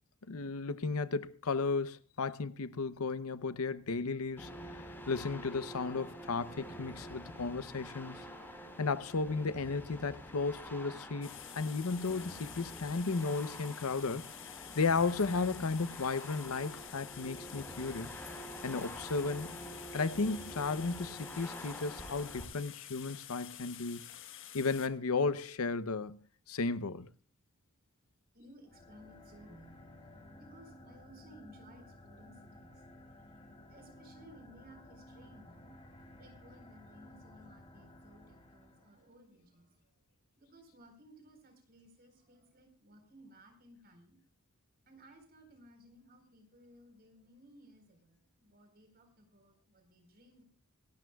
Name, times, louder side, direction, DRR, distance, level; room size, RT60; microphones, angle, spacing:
voice 1, 0.3-8.2 8.8-14.3 14.7-18.1 18.6-19.5 19.9-24.0 24.5-26.2 26.5-27.1, left 4 dB, 80° left, 0.7 m, -34 dB
sound 1, 4.4-22.4, equal, 10° left, 4.2 m, -47 dB
sound 2, 11.2-24.9, left 11 dB, 65° left, 1.3 m, -50 dB
voice 2, 28.3-33.0 33.7-40.0 40.4-44.2 44.8-50.4, right 1 dB, 45° right, 4.2 m, -59 dB
sound 3, 28.6-39.1, left 1 dB, 25° left, 3.3 m, -55 dB
26.0 x 12.5 x 2.3 m
head